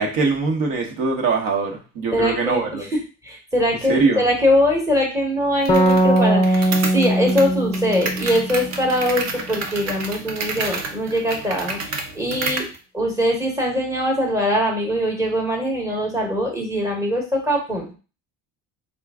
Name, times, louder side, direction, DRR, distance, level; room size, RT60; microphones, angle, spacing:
voice 1, 0.0-2.9 3.9-4.2, right 4 dB, 65° right, 2 dB, 1.2 m, -22 dB
voice 2, 2.1-2.6 3.2-12.6 12.9-17.9, equal, 10° right, -1 dB, 1.0 m, -22 dB
sound 1, 5.7-9.2, right 1 dB, 15° left, 0.4 m, -20 dB
sound 2, 5.7-12.8, right 4 dB, 45° right, 0.8 m, -30 dB
4.4 x 2.4 x 3.5 m, 0.34 s
cardioid pair, 155°, 37 cm